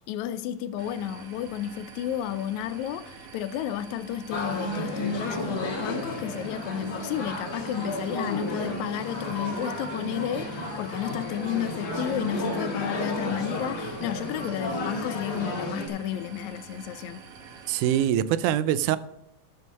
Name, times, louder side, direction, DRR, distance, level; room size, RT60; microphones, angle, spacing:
voice 1, 0.1-17.2, left 11 dB, 80° left, 1.8 m, -32 dB
sound 1, 0.8-18.1, right 5 dB, 55° right, 2.0 m, -47 dB
sound 2, 4.3-15.9, left 1 dB, 60° left, 3.0 m, -33 dB
voice 2, 17.7-19.0, right 11 dB, 85° right, 2.0 m, -23 dB
12.0 x 6.4 x 5.4 m
omnidirectional pair, 3.5 m